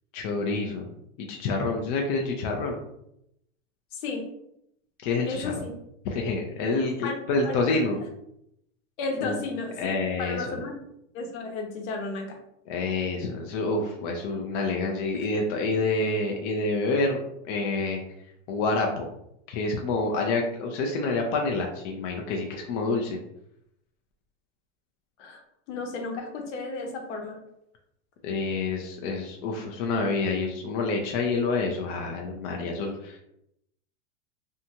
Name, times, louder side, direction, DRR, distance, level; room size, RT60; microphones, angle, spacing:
voice 1, 0.1-0.8 1.2-2.8 5.0-5.5 6.0-8.0 9.2-9.4 9.8-10.6 12.7-17.2 17.4-18.0 18.5-19.1 19.5-23.2 28.2-33.2, left 3 dB, 40° left, 1 dB, 0.4 m, -28 dB
voice 2, 3.9-4.2 5.3-5.7 7.0-7.1 7.4-7.8 9.0-10.7 11.1-12.4 15.1-15.3 25.2-25.4 25.7-27.4, left 3 dB, 65° left, 2 dB, 0.9 m, -33 dB
2.7 x 2.2 x 2.8 m, 0.76 s
supercardioid pair, 140°, 39 cm